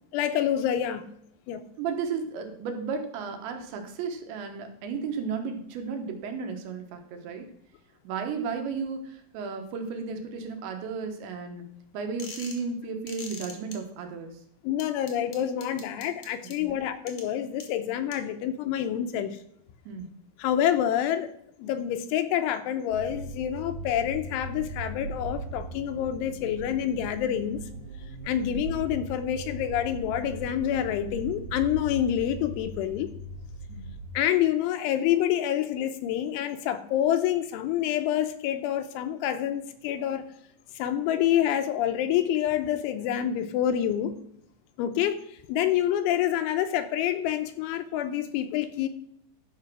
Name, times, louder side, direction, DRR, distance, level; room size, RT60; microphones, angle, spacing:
voice 1, 0.1-1.1 1.5-1.6 14.6-19.4 20.4-21.3 21.6-27.7 28.2-33.1 34.1-40.3 40.8-44.1 44.8-48.9, left 10 dB, 85° left, 9 dB, 3.2 m, -27 dB
voice 2, 1.8-7.5 8.0-11.6 11.9-14.3 16.6-16.8 19.9-20.1 33.7-33.8, right 5 dB, 75° right, 4 dB, 3.4 m, -34 dB
sound 1, 12.2-12.6 13.1-13.7 14.8-16.5 17.1-17.2 17.6-17.7 18.1-18.2, left 5 dB, 60° left, 1.5 m, -41 dB
sound 2, 22.9-34.1, right 2 dB, 55° right, 3.5 m, -39 dB
12.0 x 5.6 x 6.1 m, 0.71 s
omnidirectional pair, 5.5 m